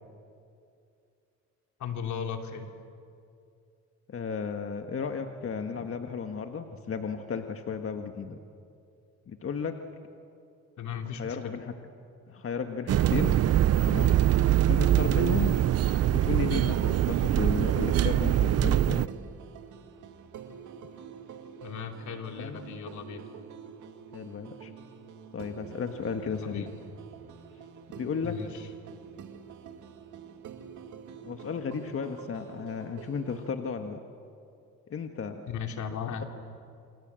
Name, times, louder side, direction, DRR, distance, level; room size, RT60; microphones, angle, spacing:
voice 1, 1.8-2.7 10.8-11.4 21.6-23.2 26.2-26.7 28.2-28.7 35.5-36.2, left 7 dB, 75° left, 4 dB, 2.9 m, -36 dB
voice 2, 4.1-8.4 9.3-9.8 11.2-11.7 12.3-13.4 13.8-14.2 14.7-15.6 16.1-19.1 22.4-22.7 24.1-24.7 25.3-26.7 28.0-28.4 31.2-34.0 34.9-35.4, left 6 dB, 45° left, 5 dB, 1.7 m, -34 dB
sound 1, 12.9-19.1, right 12 dB, 55° right, 0.6 m, -23 dB
sound 2, 16.2-33.5, right 7 dB, 75° right, 2.2 m, -47 dB
28.5 x 26.5 x 7.7 m, 2.5 s
cardioid pair, 90°, 30 cm